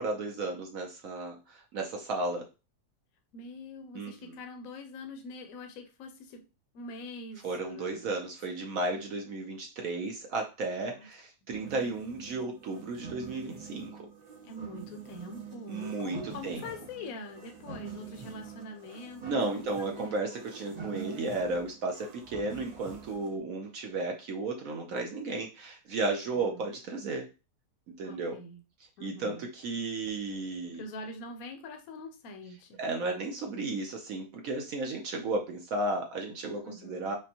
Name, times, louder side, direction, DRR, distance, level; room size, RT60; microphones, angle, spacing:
voice 1, 0.0-2.5 3.9-4.4 7.4-14.1 15.7-16.2 16.4-16.6 19.2-27.3 28.0-28.4 29.0-30.8 32.8-37.2, right 2 dB, 65° right, 2 dB, 0.9 m, -34 dB
voice 2, 3.3-6.4 6.7-8.2 10.8-11.1 11.4-11.5 14.4-20.2 26.2-26.6 28.0-28.6 29.0-29.5 30.6-32.8 36.6-37.1, left 2 dB, 65° left, 5 dB, 1.0 m, -44 dB
sound 1, 11.5-23.4, right 6 dB, 85° right, 0.3 m, -46 dB
5.1 x 2.2 x 2.8 m, 0.30 s
omnidirectional pair, 1.8 m